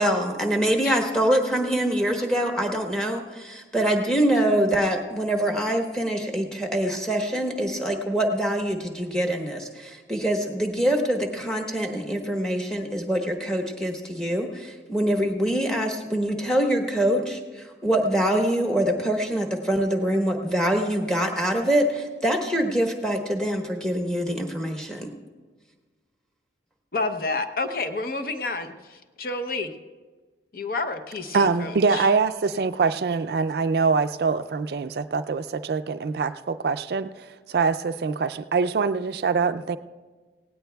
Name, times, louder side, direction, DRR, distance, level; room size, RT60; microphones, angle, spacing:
voice 1, 0.0-17.4 17.8-25.1, right 1 dB, 5° left, 2 dB, 1.1 m, -24 dB
voice 2, 26.9-29.7 30.5-32.1, left 3 dB, 55° left, 7 dB, 0.7 m, -30 dB
voice 3, 31.3-37.1 37.5-39.8, right 4 dB, 60° right, 11 dB, 0.4 m, -24 dB
18.0 x 17.0 x 2.3 m, 1.4 s
head